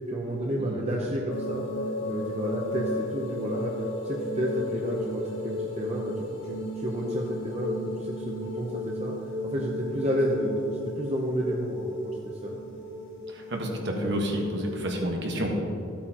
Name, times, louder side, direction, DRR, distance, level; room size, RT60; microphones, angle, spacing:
voice 1, 0.1-1.6 2.0-6.1 6.4-9.2 9.4-12.2 12.4-12.6, equal, 35° right, -2 dB, 0.8 m, -31 dB
sound 1, 1.3-15.0, left 1 dB, 65° left, 1.8 m, -35 dB
voice 2, 13.3-15.6, equal, 60° right, 0 dB, 1.4 m, -29 dB
13.5 x 8.6 x 2.9 m, 2.7 s
head